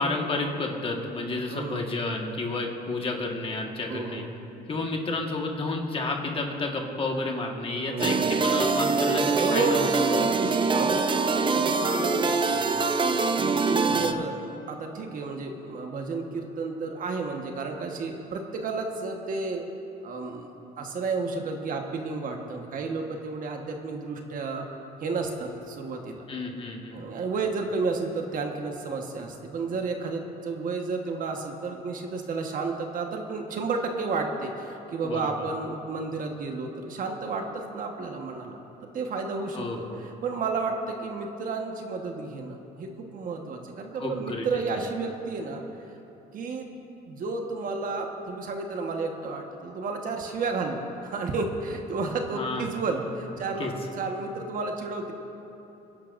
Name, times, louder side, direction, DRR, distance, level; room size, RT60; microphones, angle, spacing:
voice 1, 0.0-4.2 4.7-10.2 13.9-14.2 26.3-27.0 35.0-35.4 39.5-40.0 44.0-44.5 44.7-44.9 52.3-52.7 53.6-53.7, left 3 dB, 30° left, 1 dB, 1.5 m, -31 dB
voice 2, 1.5-1.9 3.9-4.3 7.8-8.3 9.4-11.3 11.5-12.9 13.4-14.4 14.7-19.7 20.0-20.5 20.8-24.7 25.0-26.2 26.9-45.6 46.3-46.7 47.0-55.1, right 4 dB, 55° right, 3 dB, 1.3 m, -32 dB
sound 1, 8.0-14.1, right 4 dB, 30° right, 0.6 m, -24 dB
26.5 x 11.0 x 2.6 m, 2.9 s
cardioid pair, 110°, 17 cm